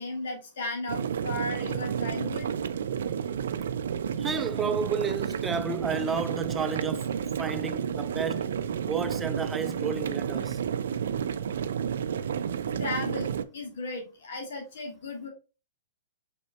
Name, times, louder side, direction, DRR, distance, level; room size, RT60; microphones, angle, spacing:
voice 1, 0.0-2.5 12.8-15.3, left 2 dB, 65° left, 1.4 m, -35 dB
sound 1, 0.9-13.4, right 8 dB, 70° right, 0.4 m, -31 dB
voice 2, 4.2-7.1 7.4-8.5 8.9-10.6, right 5 dB, 15° right, 0.5 m, -32 dB
5.1 x 4.3 x 2.2 m
hypercardioid pair, 115°, 0 cm